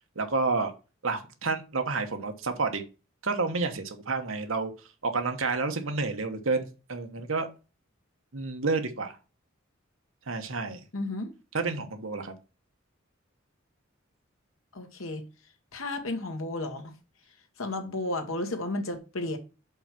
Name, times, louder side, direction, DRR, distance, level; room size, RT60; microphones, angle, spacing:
voice 1, 0.1-0.7 1.0-2.8 3.2-4.7 5.0-7.5 8.3-9.2 10.3-10.8 11.5-12.3, right 3 dB, 80° right, 1.2 m, -29 dB
voice 2, 10.9-11.3 14.7-15.2 15.7-16.9 17.6-19.4, left 2 dB, 85° left, 1.5 m, -33 dB
5.4 x 4.6 x 5.8 m
head